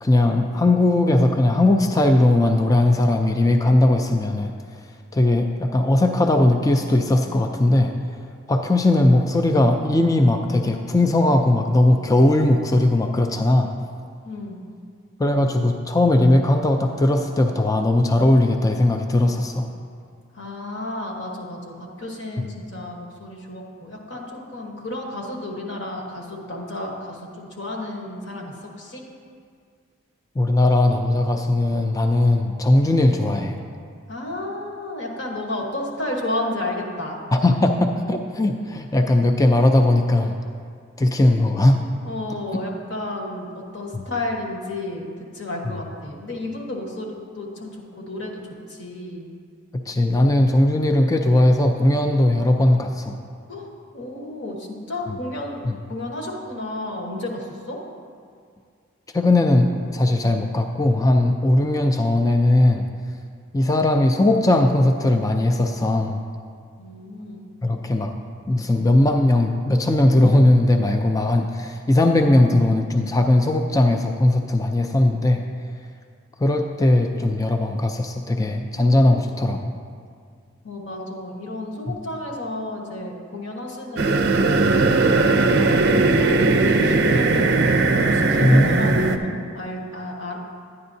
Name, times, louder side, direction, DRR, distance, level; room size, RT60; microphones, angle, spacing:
voice 1, 0.0-4.5 5.1-7.9 8.5-13.7 15.2-19.7 30.4-33.6 37.3-40.4 41.0-41.8 43.9-44.0 49.7-53.2 55.6-55.8 59.1-62.9 63.5-66.2 67.6-68.1 68.5-75.4 76.4-79.7 81.9-82.0 88.4-89.0, left 1 dB, 15° left, 4 dB, 0.3 m, -18 dB
voice 2, 14.2-14.6 20.3-29.0 34.1-37.2 42.0-45.1 45.3-49.3 53.5-57.8 66.8-67.4 80.6-87.5 88.0-90.4, left 1 dB, 55° left, 0 dB, 1.2 m, -32 dB
sound 1, 84.0-89.2, right 3 dB, 50° right, 0.5 m, -18 dB
11.0 x 9.6 x 2.7 m, 2.1 s
head